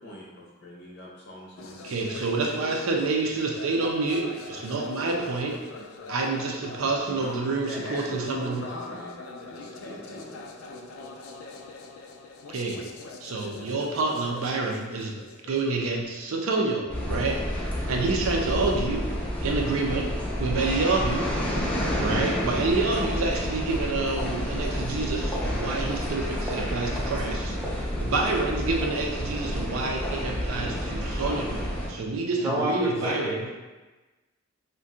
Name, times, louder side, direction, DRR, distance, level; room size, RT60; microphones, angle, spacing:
voice 1, 0.0-2.0 7.0-9.2 9.5-10.4, left 1 dB, 55° left, -3 dB, 0.7 m, -40 dB
sound 1, 1.6-17.4, left 3 dB, 85° left, 0.4 m, -43 dB
voice 2, 1.8-5.6 6.1-8.6 12.5-12.8 13.2-15.1 15.5-19.1 19.4-20.1 20.4-21.6 22.0-33.5, right 3 dB, 85° right, 0 dB, 0.5 m, -28 dB
sound 2, 16.9-31.9, equal, 5° left, 0.4 m, -29 dB
sound 3, 18.2-23.8, right 1 dB, 50° right, 0.7 m, -48 dB
voice 3, 32.4-33.5, equal, 15° right, -7 dB, 0.8 m, -29 dB
2.5 x 2.2 x 3.7 m, 1.2 s
head